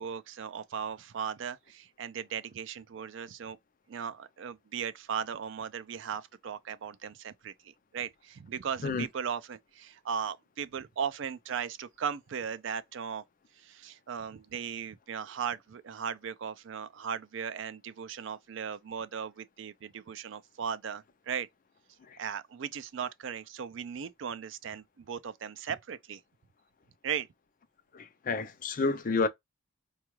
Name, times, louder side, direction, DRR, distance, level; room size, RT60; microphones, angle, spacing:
voice 1, 0.0-3.6 3.9-13.2 13.6-21.5 22.2-26.2 27.0-27.3, right 7 dB, 65° right, 0.4 m, -37 dB
voice 2, 27.9-29.3, left 4 dB, 40° left, 0.4 m, -29 dB
4.4 x 2.3 x 3.0 m
head